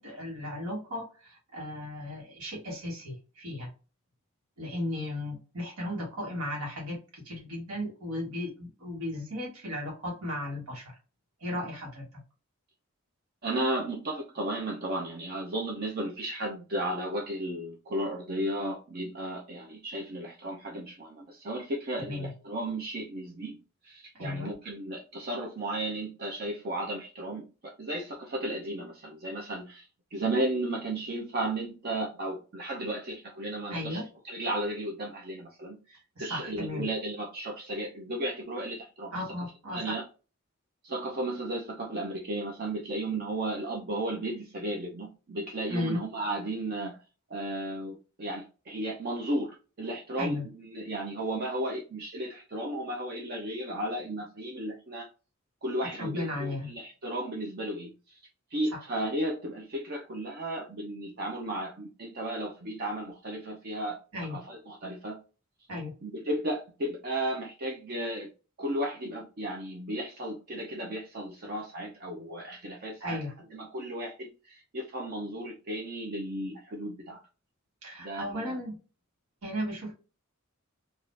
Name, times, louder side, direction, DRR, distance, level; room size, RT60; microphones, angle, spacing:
voice 1, 0.0-3.7 4.6-10.9 11.4-12.0 22.1-22.3 24.1-24.5 33.7-34.1 36.2-36.9 39.1-40.0 45.7-46.0 50.2-50.4 55.9-56.7 58.7-58.8 64.1-64.4 65.7-65.9 73.0-73.3 77.8-78.7 79.4-79.9, left 1 dB, 90° right, 1.2 m, -35 dB
voice 2, 13.4-23.6 23.8-39.1 39.7-40.0 40.8-47.0 47.3-55.1 55.6-58.2 58.5-64.0 64.3-65.2 66.0-68.3 68.6-77.2 78.0-78.6, right 1 dB, 45° right, 0.6 m, -34 dB
3.5 x 2.4 x 2.5 m
head